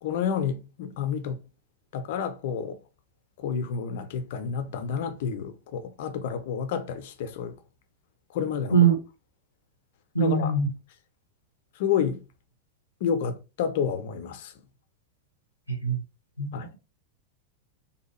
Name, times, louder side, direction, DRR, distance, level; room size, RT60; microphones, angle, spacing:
voice 1, 0.0-1.4 1.9-2.8 3.4-7.6 8.3-8.8 10.2-10.6 11.8-12.2 13.0-14.5 16.5-16.7, left 7 dB, 50° left, 0.4 m, -30 dB
voice 2, 10.1-10.7 15.8-16.0 16.4-16.8, right 6 dB, 90° right, 0.7 m, -22 dB
2.6 x 2.2 x 3.0 m
figure-of-eight pair, 90°, 0 cm